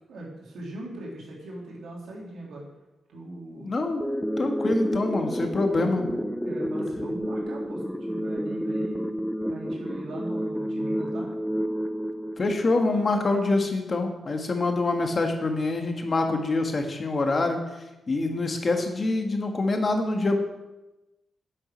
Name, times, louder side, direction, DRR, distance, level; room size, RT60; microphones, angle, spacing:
voice 1, 0.1-2.6 3.1-3.7 5.8-5.9 6.4-9.0 9.5-11.3 18.3-18.5, right 1 dB, 85° right, -3 dB, 3.7 m, -40 dB
voice 2, 3.6-4.1 4.4-6.0 12.4-17.6 18.1-20.4, left 2 dB, 35° left, 4 dB, 1.6 m, -25 dB
sound 1, 4.0-13.0, equal, ahead, 0.6 m, -30 dB
10.0 x 7.6 x 6.4 m, 1.0 s
wide cardioid pair, 125°, 0 cm